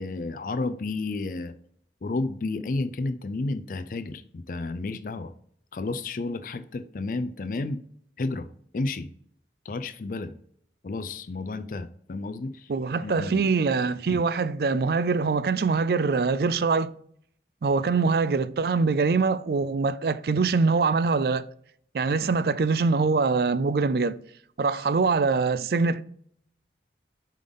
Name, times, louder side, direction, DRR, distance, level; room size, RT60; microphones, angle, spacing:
voice 1, 0.0-1.5 2.0-5.3 5.7-7.8 8.2-8.5 8.7-9.1 9.7-10.3 10.8-12.7 13.0-13.5, left 3 dB, 50° left, 0.4 m, -31 dB
voice 2, 12.7-16.9 17.6-21.5 21.9-24.2 24.6-26.0, right 4 dB, 60° right, 0.4 m, -23 dB
7.4 x 3.8 x 5.2 m
head